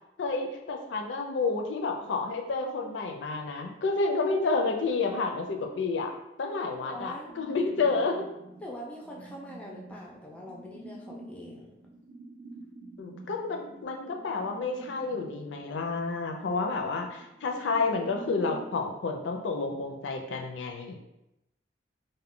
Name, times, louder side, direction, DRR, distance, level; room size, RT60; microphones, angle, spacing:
voice 1, 0.2-6.1 6.4-8.2 13.0-21.0, left 3 dB, 75° left, 3 dB, 0.4 m, -30 dB
voice 2, 6.8-7.3 8.6-11.7, equal, 5° left, -3 dB, 0.3 m, -43 dB
sound 1, 7.3-18.7, right 2 dB, 85° right, 0.5 m, -48 dB
2.2 x 2.1 x 3.6 m, 0.89 s
head